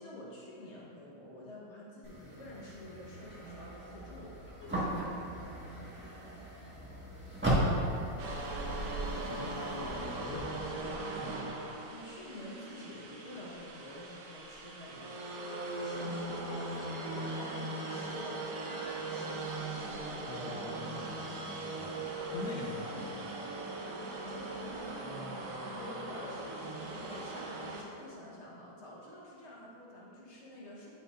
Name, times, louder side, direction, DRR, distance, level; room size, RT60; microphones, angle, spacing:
voice 1, 0.0-6.5 9.0-10.1 11.9-15.1 15.7-19.5 23.8-30.9, left 1 dB, 40° left, -5 dB, 1.1 m, -49 dB
sound 1, 2.0-10.6, right 1 dB, 5° right, 1.2 m, -37 dB
sound 2, 8.2-27.8, right 2 dB, 65° right, 0.8 m, -39 dB
voice 2, 9.2-11.8 20.0-23.5, left 3 dB, 65° left, 1 dB, 1.1 m, -45 dB
9.6 x 5.7 x 2.5 m, 2.7 s
omnidirectional pair, 2.3 m